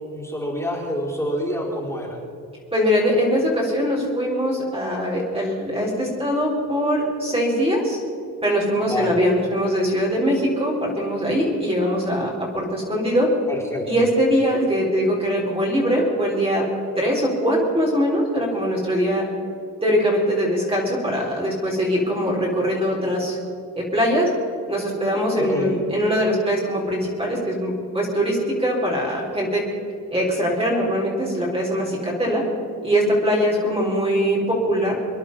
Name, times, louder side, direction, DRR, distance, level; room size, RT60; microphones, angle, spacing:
voice 1, 0.0-2.2 8.8-9.2 13.5-13.9 25.4-25.7, equal, 5° left, -4 dB, 4.5 m, -27 dB
voice 2, 2.7-8.0 8.4-13.3 13.9-16.6 17.0-19.2 19.8-23.4 23.8-24.3 24.7-29.6 30.1-32.4 32.8-35.0, equal, 15° right, -4 dB, 4.1 m, -22 dB
25.5 x 10.5 x 5.4 m, 2.6 s
cardioid pair, 100°, 37 cm